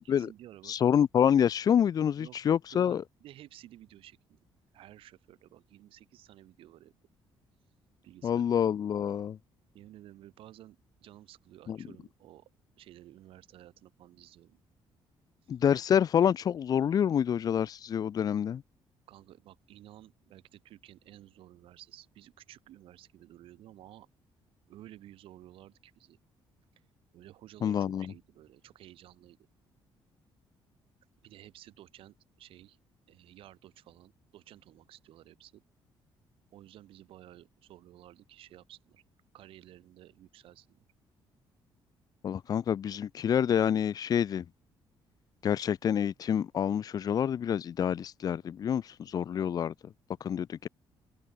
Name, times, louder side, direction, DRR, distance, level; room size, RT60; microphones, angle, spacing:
voice 1, 0.0-0.7 2.2-4.4 4.7-7.0 8.0-8.4 9.7-12.5 12.8-14.6 15.4-15.6 19.1-24.1 24.7-26.2 27.1-29.4 31.2-32.8 33.1-35.6 36.5-39.0 39.3-40.8, right 13 dB, 75° right, 6.2 m, -53 dB
voice 2, 0.7-3.0 8.2-9.4 11.7-11.8 15.5-18.6 27.6-28.1 42.2-44.4 45.4-49.7 50.2-50.7, left 8 dB, 45° left, 0.8 m, -27 dB
cardioid pair, 140°, 9 cm